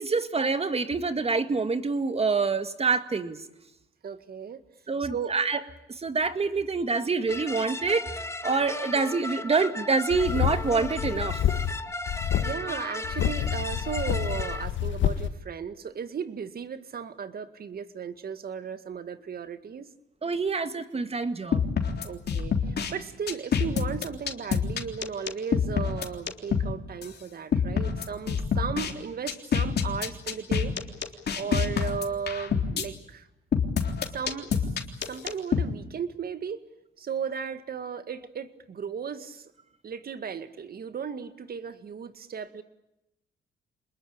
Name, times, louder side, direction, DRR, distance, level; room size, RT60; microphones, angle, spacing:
voice 1, 0.0-3.4 4.9-5.6 6.0-8.2 8.4-11.4 20.2-21.7, right 4 dB, 30° right, 10 dB, 2.0 m, -26 dB
voice 2, 4.0-4.6 5.0-5.3 12.4-19.9 22.0-30.7 31.3-33.3 34.1-34.7 35.1-36.6 37.0-39.5 39.8-42.6, right 6 dB, 50° right, 11 dB, 2.0 m, -35 dB
sound 1, 7.3-14.7, left 2 dB, 15° left, 1.6 m, -36 dB
sound 2, 10.1-11.8 12.1-12.5 13.0-15.3, left 10 dB, 75° left, 1.6 m, -28 dB
sound 3, 21.5-22.9 23.3-26.7 27.0-27.1 27.5-28.9 29.3-32.8 33.5-35.6, left 6 dB, 55° left, 3.5 m, -26 dB
26.5 x 21.0 x 8.8 m, 0.88 s
cardioid pair, 90°, 20 cm